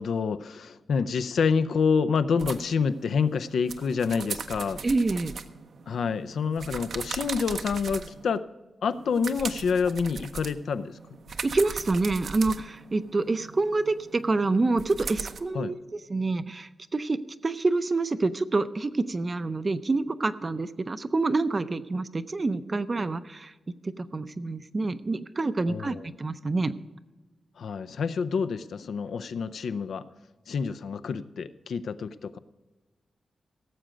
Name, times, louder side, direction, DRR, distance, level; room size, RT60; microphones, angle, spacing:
voice 1, 0.0-4.8 5.9-8.5 8.8-11.0 15.5-15.7 25.7-26.2 27.6-30.0 30.5-32.4, left 5 dB, 80° left, 13 dB, 0.5 m, -27 dB
sound 1, 2.4-8.4 8.9-15.4, right 5 dB, 65° right, 0.7 m, -39 dB
voice 2, 4.8-5.3 11.4-15.8 16.1-17.2 17.4-23.5 23.8-26.7, right 3 dB, 30° right, 13 dB, 0.5 m, -27 dB
17.0 x 7.7 x 5.1 m, 1.2 s
wide cardioid pair, 165°, 0 cm